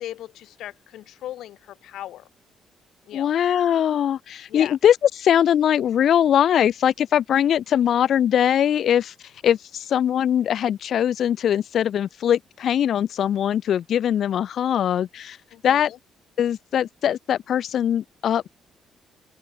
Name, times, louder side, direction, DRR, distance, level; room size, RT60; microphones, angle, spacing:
voice 1, 0.0-2.3 3.1-3.3 4.5-4.8 15.5-16.0, left 13 dB, 80° left, 1.1 m, -38 dB
voice 2, 3.1-9.1 9.4-15.4 15.6-15.9 16.4-18.5, left 9 dB, 65° left, 1.3 m, -21 dB
open air
cardioid pair, 90°, 0 cm